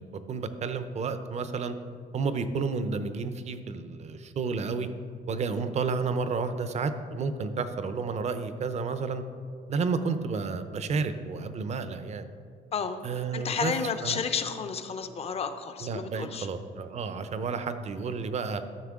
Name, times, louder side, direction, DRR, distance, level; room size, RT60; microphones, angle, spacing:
voice 1, 0.0-1.8 2.1-4.9 5.3-9.2 9.7-12.3 13.0-13.7 14.0-14.2 15.8-18.6, right 4 dB, 40° right, 10 dB, 0.7 m, -31 dB
voice 2, 13.3-16.5, left 6 dB, 35° left, 9 dB, 0.7 m, -31 dB
13.0 x 6.5 x 3.7 m, 2.3 s
cardioid pair, 110°, 17 cm